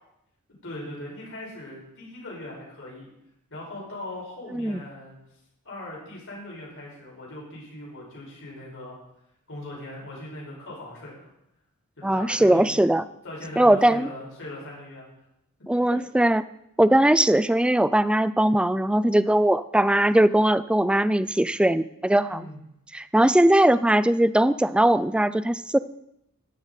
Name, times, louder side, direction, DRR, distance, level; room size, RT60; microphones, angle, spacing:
voice 1, 0.6-3.1 3.5-5.1 5.6-8.9 9.5-11.3 12.0-12.9 13.2-15.1 15.9-16.0 22.3-22.6, left 1 dB, 60° left, -4 dB, 4.9 m, -39 dB
voice 2, 12.0-13.0 13.6-14.1 15.7-16.4 16.8-22.5 22.9-25.8, right 1 dB, 5° right, 15 dB, 0.3 m, -20 dB
13.5 x 10.0 x 4.0 m, 0.82 s
head